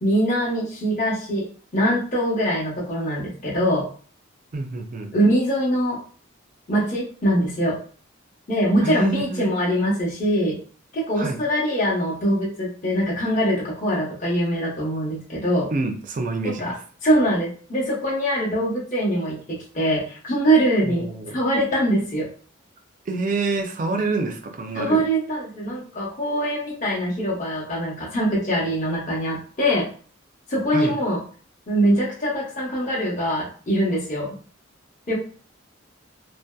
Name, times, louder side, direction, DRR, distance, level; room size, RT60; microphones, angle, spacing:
voice 1, 0.0-3.9 5.1-6.0 6.7-7.8 8.5-10.6 10.9-15.7 16.6-16.7 17.0-22.3 24.7-29.9 30.5-31.2 31.7-34.4 35.1-35.2, right 1 dB, 40° left, -6 dB, 0.8 m, -23 dB
voice 2, 4.5-5.1 8.8-9.5 11.2-11.4 15.7-16.8 20.8-21.4 23.1-25.0 30.7-31.0, right 3 dB, 40° right, 4 dB, 0.4 m, -27 dB
2.6 x 2.1 x 2.2 m, 0.42 s
head